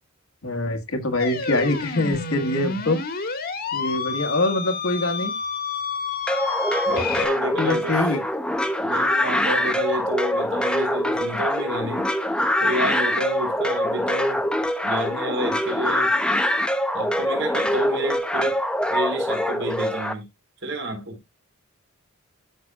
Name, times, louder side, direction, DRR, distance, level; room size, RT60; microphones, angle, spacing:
voice 1, 0.4-3.0 3.7-5.3 7.6-8.2, left 2 dB, 70° left, 1.7 m, -24 dB
sound 1, 1.2-7.3, left 4 dB, 45° left, 1.6 m, -29 dB
sound 2, 6.3-20.1, left 1 dB, 5° left, 0.8 m, -24 dB
voice 2, 6.9-8.1 8.8-12.1 12.6-14.4 14.8-16.1 16.9-18.6 18.9-20.2 20.6-21.2, right 1 dB, 60° right, 3.9 m, -29 dB
12.5 x 6.1 x 2.3 m
head